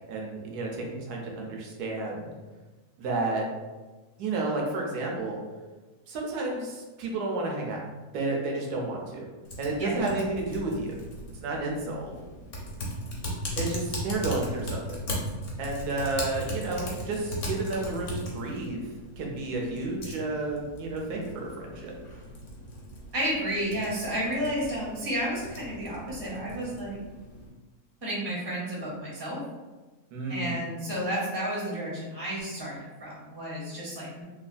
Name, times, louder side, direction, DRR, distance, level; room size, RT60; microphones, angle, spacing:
voice 1, 0.1-2.3 3.0-3.4 4.2-5.4 6.1-7.8 8.1-9.3 9.6-10.9 11.4-12.1 13.6-15.0 15.6-18.8 19.2-21.9 30.1-30.5, right 2 dB, 80° right, -1 dB, 1.2 m, -31 dB
Typing, 9.4-27.5, equal, 60° left, 1.0 m, -38 dB
voice 2, 9.8-10.2 23.1-27.0 28.0-29.4 30.3-34.2, equal, 35° right, -6 dB, 0.4 m, -32 dB
3.2 x 2.2 x 2.5 m, 1.2 s
omnidirectional pair, 1.6 m